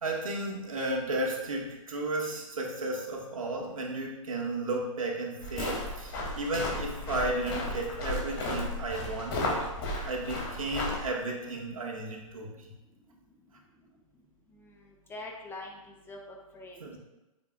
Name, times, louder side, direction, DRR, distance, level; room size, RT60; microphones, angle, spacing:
voice 1, 0.0-9.7 10.1-12.7 16.8-17.0, right 2 dB, 70° right, -1 dB, 1.9 m, -33 dB
sound 1, 5.4-11.1, left 1 dB, 45° left, 2.7 m, -34 dB
voice 2, 15.1-16.8, left 2 dB, 10° left, 1 dB, 1.0 m, -43 dB
9.4 x 7.2 x 2.5 m, 1.0 s
figure-of-eight pair, 120°, 18 cm